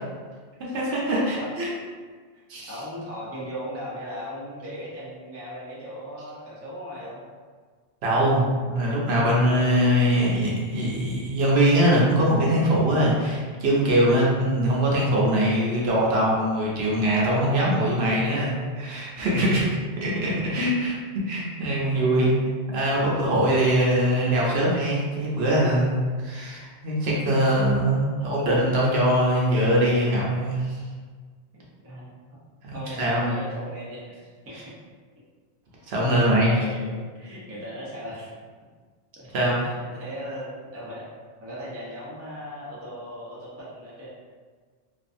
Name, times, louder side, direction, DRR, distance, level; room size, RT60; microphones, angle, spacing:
voice 1, 0.7-1.7 2.5-2.8 8.0-19.7 20.0-20.9 21.2-22.3 22.7-30.8 32.6-33.4 35.9-36.5 39.3-39.6, right 1 dB, 65° right, -5 dB, 0.8 m, -22 dB
voice 2, 2.3-7.2 28.1-28.3 31.8-32.4 32.7-34.6 36.1-38.3 39.2-41.1 41.4-44.1, equal, 25° right, -7 dB, 0.3 m, -38 dB
2.5 x 2.3 x 2.5 m, 1.5 s
omnidirectional pair, 1.2 m